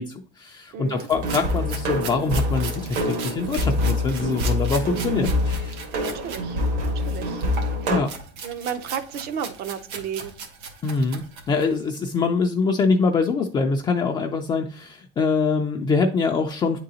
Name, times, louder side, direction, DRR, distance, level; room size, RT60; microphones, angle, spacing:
voice 1, 0.0-5.7 7.9-8.1 10.8-16.8, left 4 dB, 25° left, 3 dB, 0.3 m, -24 dB
voice 2, 0.7-1.1 5.9-7.4 7.8-7.9 8.4-10.3, right 8 dB, 55° right, 11 dB, 0.6 m, -33 dB
sound 1, 0.9-6.4 6.8-11.8, right 5 dB, 90° right, 1.2 m, -38 dB
sound 2, 1.1-8.0, left 1 dB, 75° right, 1.4 m, -25 dB
9.1 x 3.8 x 2.8 m, 0.43 s
cardioid pair, 160°, 19 cm